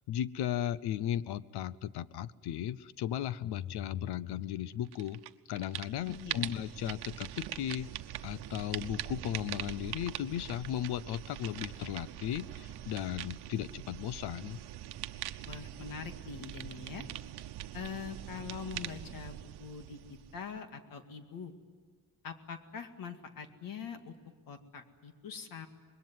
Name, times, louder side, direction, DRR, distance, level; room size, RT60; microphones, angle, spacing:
voice 1, 0.1-5.2 5.5-7.9 8.2-14.6, left 11 dB, 90° left, 18 dB, 0.8 m, -36 dB
sound 1, 4.9-5.3 5.6-20.6, right 13 dB, 85° right, 1.0 m, -43 dB
voice 2, 6.1-6.7 15.5-17.1 17.7-21.5 22.2-24.1 24.5-25.7, left 6 dB, 60° left, 7 dB, 2.2 m, -44 dB
25.5 x 21.5 x 9.4 m, 1.5 s
cardioid pair, 175°, 38 cm